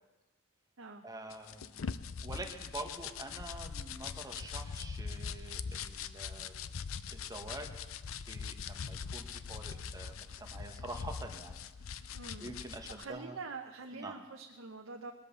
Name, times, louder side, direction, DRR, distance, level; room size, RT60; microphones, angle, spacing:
voice 1, 1.0-1.8 2.2-6.5 7.1-8.0 8.3-11.5 12.1-13.3 13.9-14.2, right 2 dB, 20° right, 3 dB, 1.5 m, -46 dB
sound 1, 1.3-13.0, left 6 dB, 85° left, 0.6 m, -42 dB
voice 2, 12.1-12.5 12.9-15.1, right 4 dB, 70° right, 3 dB, 0.9 m, -45 dB
20.5 x 8.2 x 6.9 m, 1.1 s
head